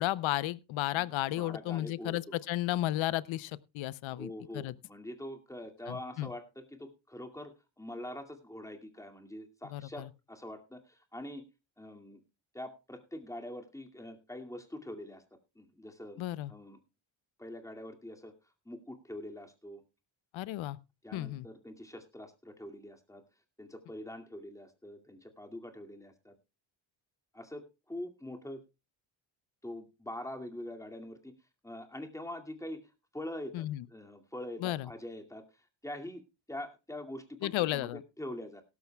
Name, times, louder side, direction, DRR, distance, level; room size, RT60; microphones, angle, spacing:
voice 1, 0.0-4.7 5.9-6.3 9.7-10.1 16.2-16.5 20.3-20.8 21.1-21.5 33.5-33.8 34.6-34.9 37.4-38.0, left 15 dB, 75° left, 0.7 m, -33 dB
voice 2, 0.9-2.4 4.1-11.4 11.8-12.2 12.5-15.2 15.6-16.2 16.5-16.8 17.4-18.3 18.7-19.8 21.0-23.2 23.6-26.3 27.3-28.6 29.6-31.3 31.6-36.2 36.5-37.9 38.2-38.6, left 1 dB, 5° left, 2.2 m, -44 dB
16.5 x 13.0 x 2.3 m
cardioid pair, 100°, 47 cm